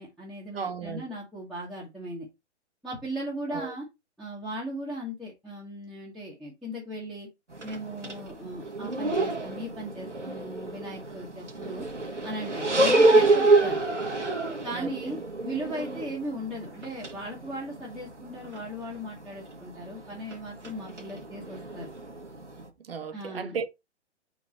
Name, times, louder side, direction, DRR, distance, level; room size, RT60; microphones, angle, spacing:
voice 1, 0.0-2.3 2.8-3.8 4.2-7.3 7.6-11.8 12.2-13.8 14.6-21.9 23.1-23.6, equal, ahead, 1.3 m, -37 dB
voice 2, 0.5-1.1 3.5-3.7 14.7-15.2 22.8-23.7, right 6 dB, 55° right, 1.2 m, -35 dB
sound 1, 7.5-22.7, right 2 dB, 90° right, 1.6 m, -28 dB
5.2 x 4.8 x 4.1 m
figure-of-eight pair, 125°, 35 cm